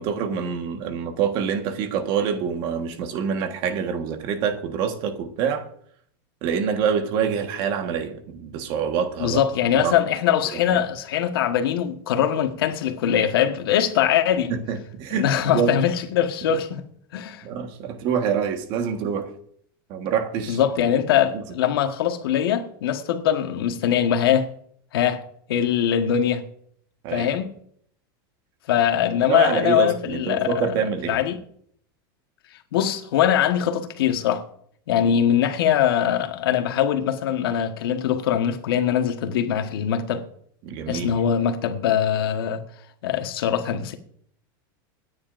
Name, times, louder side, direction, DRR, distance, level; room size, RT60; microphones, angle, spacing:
voice 1, 0.0-5.7 6.4-9.4 9.7-10.0 10.5-10.8 14.5-15.8 17.4-19.3 19.9-20.6 21.3-21.4 27.0-27.3 29.3-31.2 40.6-41.2, right 7 dB, 40° right, 1.5 m, -26 dB
voice 2, 9.2-14.5 15.1-16.8 17.1-17.4 20.5-24.5 24.9-25.2 25.5-26.4 27.1-27.5 28.7-30.5 31.1-31.4 32.7-34.4 34.9-40.3 40.9-42.6 43.0-43.9, left 9 dB, 85° left, 1.4 m, -22 dB
26.0 x 9.7 x 2.6 m
supercardioid pair, 160°, 12 cm